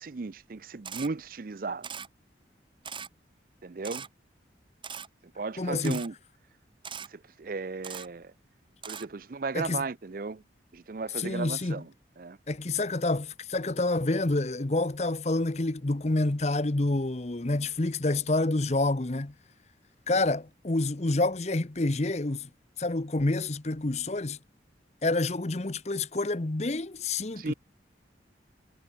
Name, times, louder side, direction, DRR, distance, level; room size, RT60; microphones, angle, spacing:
voice 1, 0.0-1.9 3.6-4.1 5.4-6.1 7.1-8.3 8.9-10.4 10.7-11.9 12.2-12.4 27.4-27.5, right 4 dB, 50° right, 0.5 m, -35 dB
Camera, 0.8-1.1 1.8-2.1 2.8-3.1 3.8-4.1 4.8-5.1 5.8-6.1 6.8-7.1 7.8-8.1 8.8-9.1, right 7 dB, 25° right, 2.6 m, -39 dB
voice 2, 5.6-6.0 9.5-9.8 11.2-11.7 12.5-19.3 20.1-22.5 22.8-24.4 25.0-27.5, left 2 dB, 35° left, 0.9 m, -28 dB
head